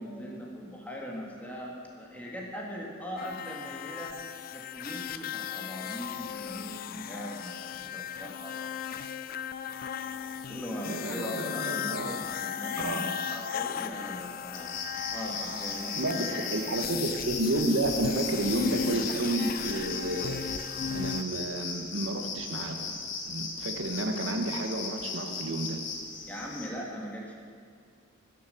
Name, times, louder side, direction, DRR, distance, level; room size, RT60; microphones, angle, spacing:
voice 1, 0.0-4.1 4.5-8.6 10.5-16.9 26.3-27.4, equal, 10° left, -3 dB, 1.7 m, -40 dB
sound 1, 3.2-21.2, left 8 dB, 50° left, 0.3 m, -36 dB
voice 2, 10.8-12.2 12.8-13.1 15.9-16.3 16.5-20.4 20.9-22.8 23.2-25.8, right 1 dB, 90° right, 5 dB, 1.1 m, -31 dB
sound 2, 14.5-26.7, left 4 dB, 70° left, 1.7 m, -37 dB
13.0 x 7.3 x 6.4 m, 2.1 s
head